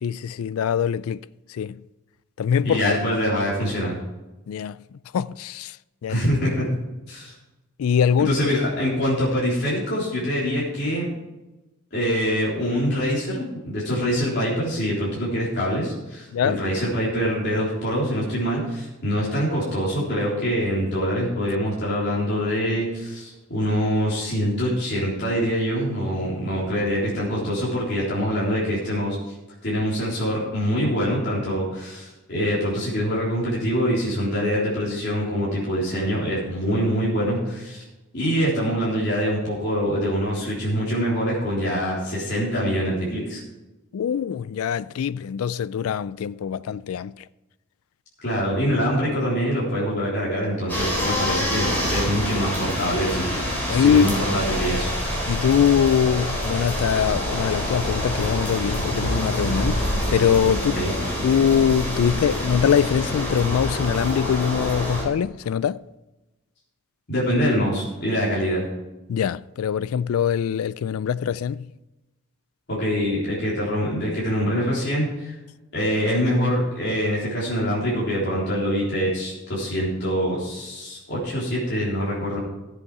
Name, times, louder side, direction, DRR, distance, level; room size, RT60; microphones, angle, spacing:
voice 1, 0.0-1.2 1.5-1.8 2.4-3.0 4.5-4.8 5.1-5.8 6.0-6.2 7.8-8.3 16.3-16.6 43.9-47.1 53.7-54.1 55.3-60.8 61.2-65.8 69.1-71.7, left 8 dB, 80° left, 0.3 m, -22 dB
voice 2, 2.6-4.0 6.1-6.6 7.1-7.3 8.2-11.0 11.9-29.3 29.6-37.8 38.1-43.4 48.2-53.3 53.7-54.9 60.7-60.9 67.1-68.6 72.7-75.3 75.7-82.4, equal, 50° left, 3.7 m, -24 dB
sound 1, 50.7-65.0, equal, 10° left, 4.2 m, -26 dB
14.0 x 8.0 x 4.9 m
head